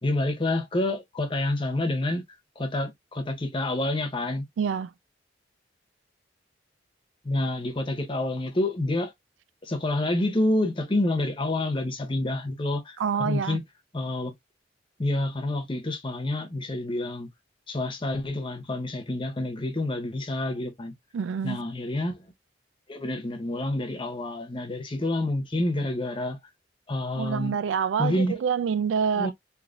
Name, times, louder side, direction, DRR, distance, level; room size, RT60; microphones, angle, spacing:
voice 1, 0.0-2.2 2.6-4.4 7.2-9.1 9.6-13.6 13.9-14.3 15.0-17.3 17.7-20.9 21.4-22.2 22.9-26.4 26.9-27.5 28.0-28.4 29.2-29.3, left 1 dB, 25° left, 0.7 m, -28 dB
voice 2, 4.6-4.9 13.0-13.6 21.1-21.7 27.1-29.3, right 6 dB, 75° right, 0.3 m, -27 dB
3.3 x 2.6 x 2.4 m
head